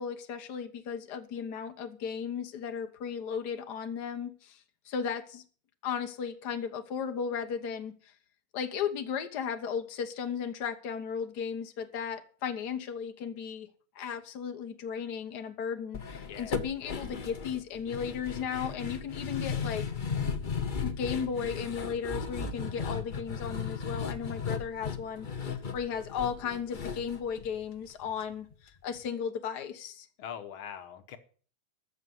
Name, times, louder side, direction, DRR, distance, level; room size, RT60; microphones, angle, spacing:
voice 1, 0.0-4.6 4.9-5.4 5.8-7.9 8.5-13.7 14.0-19.9 20.8-30.1, left 7 dB, 55° left, 1.8 m, -35 dB
sound 1, 15.9-28.2 28.5-28.6 29.0-29.1, left 5 dB, 35° left, 0.8 m, -36 dB
voice 2, 16.2-16.5 30.2-31.2, left 9 dB, 85° left, 1.9 m, -42 dB
14.0 x 6.4 x 9.5 m
omnidirectional pair, 2.3 m